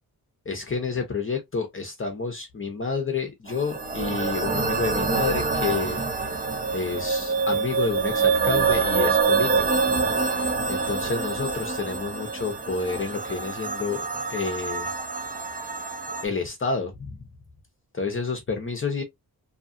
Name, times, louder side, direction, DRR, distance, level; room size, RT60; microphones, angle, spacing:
voice 1, 0.5-6.0 6.7-14.9 16.2-17.2 17.9-19.0, left 4 dB, 35° left, 0.8 m, -29 dB
sound 1, 3.5-16.2, right 4 dB, 25° right, 0.5 m, -26 dB
2.8 x 2.3 x 2.6 m
cardioid pair, 90°, 38 cm